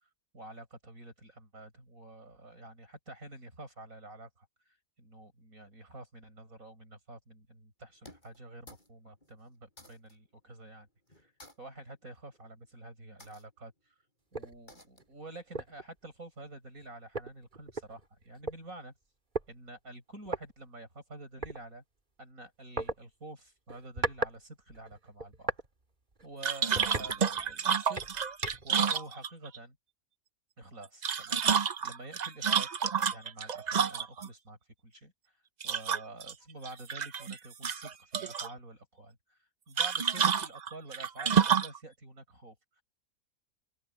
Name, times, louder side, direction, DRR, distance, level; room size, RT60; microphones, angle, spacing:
voice 1, 0.3-10.9 11.1-11.3 11.6-13.9 14.3-18.9 19.5-21.8 22.2-25.5 26.2-28.2 28.6-29.8 30.6-34.6 34.8-35.1 35.6-42.8, right 2 dB, 65° right, 8.0 m, -49 dB
sound 1, 8.0-8.9 9.2-10.2 11.1-11.6 12.3-12.6 13.2-13.5 14.7-15.2, left 1 dB, 30° left, 7.5 m, -54 dB
sound 2, 14.3-14.5 15.0-15.1 15.5-15.8 16.8-16.9 17.1-18.6 19.3-19.5 20.3-20.4 21.4-21.6 22.8-23.0 23.7-24.4 24.7-25.7 26.1-26.3 26.8-27.6 28.0-28.8, right 2 dB, 35° right, 2.1 m, -36 dB
Water Slosh in Metal Bottle - various, 26.4-29.6 30.8-34.3 35.6-36.3 36.7-37.4 37.6-38.5 39.8-41.8, right 7 dB, 50° right, 0.5 m, -29 dB
open air
omnidirectional pair, 1.5 m